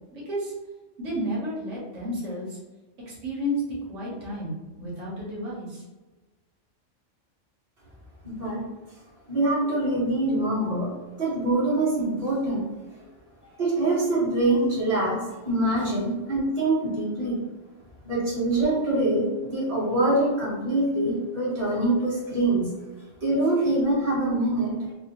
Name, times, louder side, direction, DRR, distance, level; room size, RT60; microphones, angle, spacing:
voice 1, 0.1-0.5 1.0-2.6 3.1-3.6 3.9-5.8, equal, 80° right, -5 dB, 1.3 m, -32 dB
voice 2, 8.2-8.6 9.3-10.9 11.2-12.7 13.6-17.4 18.0-22.7 23.2-24.8, right 2 dB, 30° right, -8 dB, 1.3 m, -24 dB
4.1 x 2.0 x 2.8 m, 1.2 s
omnidirectional pair, 1.3 m